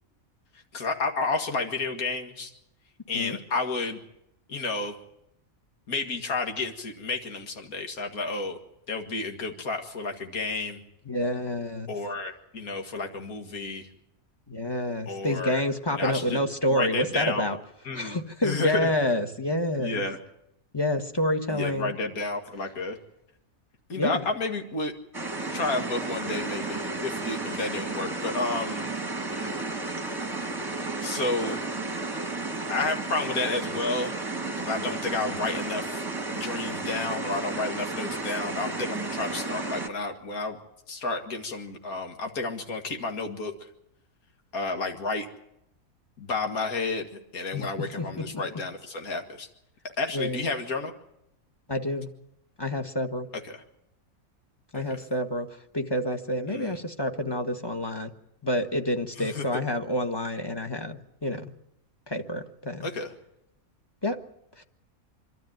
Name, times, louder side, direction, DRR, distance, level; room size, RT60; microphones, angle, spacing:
voice 1, 0.7-2.5 3.1-4.0 4.5-5.0 5.9-8.6 8.9-10.8 11.9-13.9 15.1-15.6 16.0-16.4 16.7-17.5 17.9-18.2 18.4-18.9 19.8-20.2 21.5-23.0 23.9-24.9 25.5-28.8 31.0-31.6 32.7-34.1 34.6-40.6 40.9-43.7 44.5-45.3 46.2-49.5 50.0-50.9 53.5-53.6 54.7-54.8 56.5-56.8 59.2-59.4 62.8-63.1, left 3 dB, 80° left, 4 dB, 2.4 m, -31 dB
voice 2, 11.0-11.9 14.5-17.6 17.9-20.0 20.7-21.9 23.9-24.2 47.5-47.7 48.0-48.3 50.1-50.5 51.7-52.1 52.6-53.3 54.7-58.1 58.4-61.5 62.1-62.9 64.0-64.2 64.6-64.7, left 1 dB, 15° left, 6 dB, 1.4 m, -28 dB
sound 1, 25.1-39.9, right 3 dB, 15° right, 1.4 m, -33 dB
26.0 x 13.0 x 9.3 m, 0.83 s
omnidirectional pair, 1.5 m